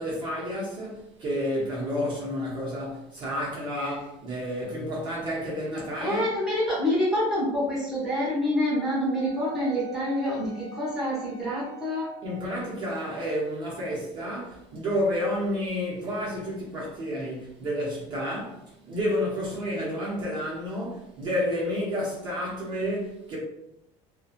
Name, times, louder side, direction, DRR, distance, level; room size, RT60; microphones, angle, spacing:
voice 1, 0.0-6.3 12.2-18.6 18.9-23.4, equal, 35° right, 0.8 m, -30 dB
voice 2, 6.0-12.1, left 1 dB, 5° right, 1.0 m, -27 dB
Wind instrument woodwind instrument, 8.7-12.9, right 8 dB, 60° left, 0.9 m, -45 dB
2.7 x 2.3 x 2.4 m
cardioid pair, 165°, 13 cm